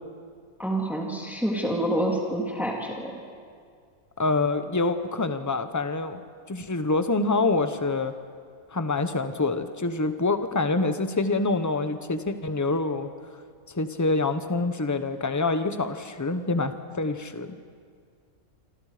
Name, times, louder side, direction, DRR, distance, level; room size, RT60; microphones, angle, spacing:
voice 1, 0.6-3.1, right 1 dB, ahead, -1 dB, 2.9 m, -27 dB
voice 2, 4.2-6.2 6.5-8.1 8.7-13.1 13.7-17.6, left 3 dB, 15° left, 9 dB, 0.9 m, -26 dB
27.5 x 25.5 x 5.1 m, 2.1 s
omnidirectional pair, 1.5 m